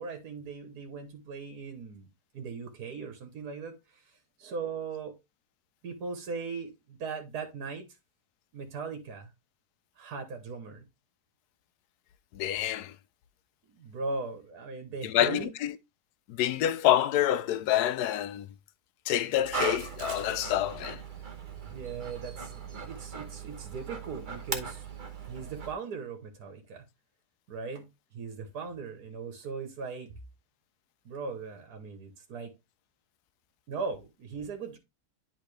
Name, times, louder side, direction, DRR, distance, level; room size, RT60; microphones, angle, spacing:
voice 1, 0.0-2.1 2.3-4.0 4.4-5.1 5.8-7.9 8.5-9.3 10.0-10.8 13.7-15.5 21.7-24.9 25.3-26.8 27.5-27.9 28.1-30.1 31.0-32.5 33.7-34.8, right 4 dB, 75° right, 1.6 m, -39 dB
voice 2, 12.3-12.9 15.0-15.8 16.3-18.5 19.1-21.0, left 12 dB, 80° left, 1.1 m, -27 dB
Dog, 19.3-25.7, right 5 dB, 35° right, 1.0 m, -38 dB
10.5 x 3.7 x 3.2 m
omnidirectional pair, 1.7 m